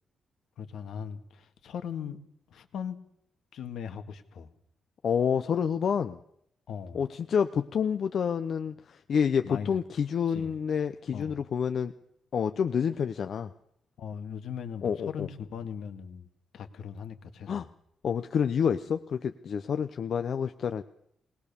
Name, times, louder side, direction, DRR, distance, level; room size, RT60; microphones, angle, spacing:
voice 1, 0.6-2.2 2.5-3.0 3.5-4.5 6.7-7.1 9.4-9.8 10.3-10.6 11.1-11.4 14.0-16.3 16.5-17.7, left 7 dB, 75° left, 8 dB, 1.9 m, -39 dB
voice 2, 5.0-6.2 6.9-11.9 12.3-13.5 14.8-15.3 17.5-17.7 18.0-20.8, left 7 dB, 50° left, 9 dB, 0.7 m, -28 dB
20.5 x 19.5 x 6.9 m, 0.71 s
wide cardioid pair, 155°, 0 cm